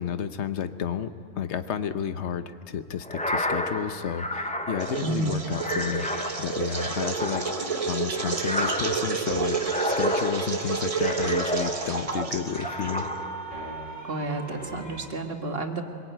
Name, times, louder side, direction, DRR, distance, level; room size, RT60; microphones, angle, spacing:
voice 1, 0.0-6.1 6.4-13.1, left 8 dB, 70° left, 10 dB, 1.2 m, -31 dB
sound 1, 3.0-12.1 12.5-13.6, left 1 dB, 5° left, 0.7 m, -32 dB
sound 2, 4.8-13.3, right 5 dB, 30° right, 1.1 m, -30 dB
voice 2, 5.0-5.4 14.0-15.8, right 2 dB, 55° right, 4 dB, 1.9 m, -30 dB
sound 3, 9.3-15.1, right 1 dB, 45° left, 2.7 m, -40 dB
22.5 x 21.5 x 9.1 m, 2.5 s
omnidirectional pair, 1.2 m